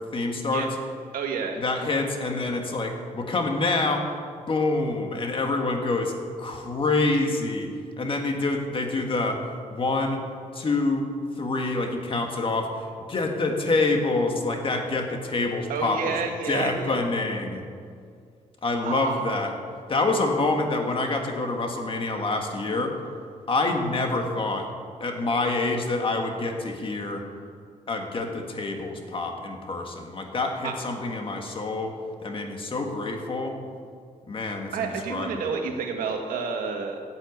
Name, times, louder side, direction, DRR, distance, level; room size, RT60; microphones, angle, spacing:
voice 1, 0.1-0.7 1.6-4.1 4.5-6.1 6.4-7.7 8.0-9.4 9.7-10.2 10.5-11.1 11.4-12.7 13.1-16.1 16.5-17.6 18.6-19.5 19.9-22.9 23.5-24.7 25.0-27.2 27.9-31.9 32.2-33.5 34.3-35.5, left 3 dB, 40° left, 3 dB, 1.8 m, -26 dB
voice 2, 1.1-1.6 15.7-17.0 18.8-19.4 30.6-30.7 34.7-37.0, right 5 dB, 85° right, 3 dB, 1.7 m, -30 dB
11.5 x 8.2 x 8.2 m, 2.2 s
cardioid pair, 110°, 14 cm